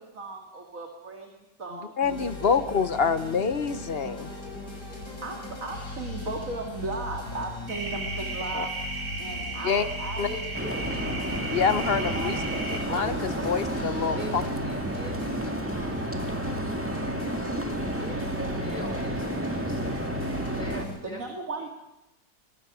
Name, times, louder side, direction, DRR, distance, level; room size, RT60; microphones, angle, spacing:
voice 1, 0.0-2.2 2.4-2.6 5.2-8.7 9.2-10.4 10.7-10.8 12.1-14.3 21.0-21.7, right 2 dB, 50° right, 2 dB, 2.6 m, -37 dB
sound 1, 2.0-21.0, left 1 dB, 70° left, 6.4 m, -38 dB
voice 2, 2.0-4.3 8.5-8.7 9.6-9.8 10.2-10.3 11.5-12.4 12.9-14.4, left 6 dB, 45° left, 12 dB, 0.9 m, -26 dB
voice 3, 4.8-5.4 9.7-9.9 10.3-11.4 14.2-17.7 18.0-20.0 20.6-21.2 21.6-21.7, left 2 dB, 25° left, 1 dB, 5.1 m, -44 dB
sound 2, 7.7-12.8, right 3 dB, 65° right, 4.9 m, -35 dB
sound 3, 10.5-20.8, right 1 dB, 5° right, 2.0 m, -31 dB
24.0 x 20.5 x 6.2 m, 0.95 s
omnidirectional pair, 1.9 m